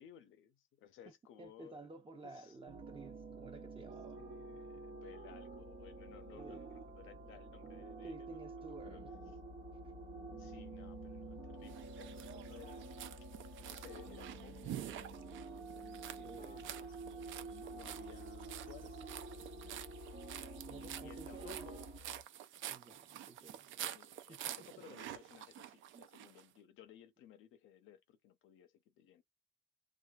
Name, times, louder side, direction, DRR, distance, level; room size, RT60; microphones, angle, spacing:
voice 1, 0.0-2.6 4.2-8.4 8.7-9.0 10.3-13.3 13.7-15.3 15.6-20.1 20.7-21.9 23.9-29.2, left 10 dB, 85° left, 0.7 m, -59 dB
voice 2, 1.4-4.2 6.3-6.8 8.0-9.1 16.2-16.7 20.7-21.7 22.7-23.7 24.3-24.4 25.9-26.0, right 3 dB, 25° right, 0.8 m, -53 dB
sound 1, 2.7-22.0, right 4 dB, 60° right, 0.9 m, -49 dB
sound 2, 5.5-22.2, left 6 dB, 20° left, 0.6 m, -58 dB
sound 3, 11.7-26.4, right 11 dB, 75° right, 0.4 m, -49 dB
2.5 x 2.3 x 2.3 m
cardioid pair, 90°, 20 cm